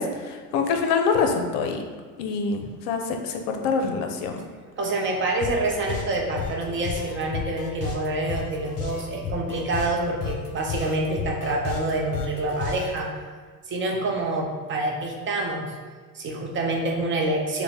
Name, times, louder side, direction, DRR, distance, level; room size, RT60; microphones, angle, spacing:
voice 1, 0.0-1.8 2.2-4.4, left 5 dB, 65° left, 4 dB, 0.7 m, -25 dB
voice 2, 4.8-13.2 13.7-15.8 16.1-17.6, right 2 dB, 25° right, -1 dB, 0.6 m, -27 dB
sound 1, 5.4-13.0, left 7 dB, 30° left, 0.8 m, -32 dB
6.5 x 2.2 x 3.4 m, 1.5 s
hypercardioid pair, 105°, 49 cm